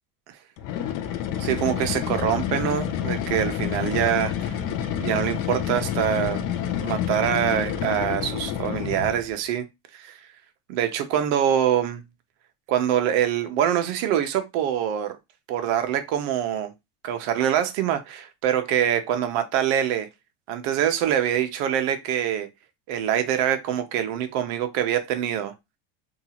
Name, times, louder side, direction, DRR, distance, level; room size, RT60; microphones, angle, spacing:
sound 1, 0.6-9.3, left 9 dB, 50° left, 0.4 m, -28 dB
voice 1, 1.4-4.5 5.0-6.4 6.8-9.7 9.9-10.2 10.7-12.0 12.7-15.1 15.5-16.7 17.0-20.1 20.5-22.5 22.9-25.5, right 10 dB, 60° right, 0.6 m, -24 dB
2.7 x 2.3 x 2.8 m
supercardioid pair, 140°, 30 cm